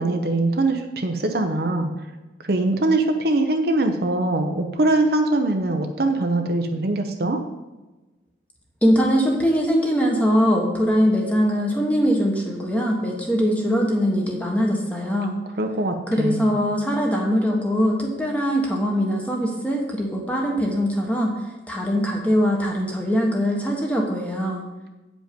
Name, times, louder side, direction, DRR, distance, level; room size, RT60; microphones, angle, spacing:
voice 1, 0.0-1.9 2.4-7.4 15.6-16.5, right 2 dB, 60° right, 4 dB, 0.7 m, -22 dB
voice 2, 8.8-15.3 16.1-21.3 21.7-24.6, equal, 10° left, 0 dB, 1.2 m, -22 dB
8.7 x 5.2 x 5.2 m, 1.1 s
head